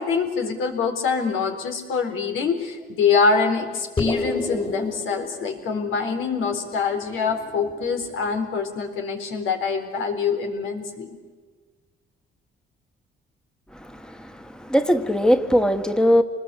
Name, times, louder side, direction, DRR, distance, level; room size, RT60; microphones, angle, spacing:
voice 1, 0.0-11.1, left 5 dB, 85° left, 4 dB, 4.1 m, -24 dB
sound 1, 4.0-8.7, left 2 dB, 25° left, 3.4 m, -33 dB
voice 2, 13.8-16.2, equal, 5° left, 7 dB, 1.6 m, -20 dB
27.5 x 21.0 x 8.3 m, 1.4 s
cardioid pair, 90°, 20 cm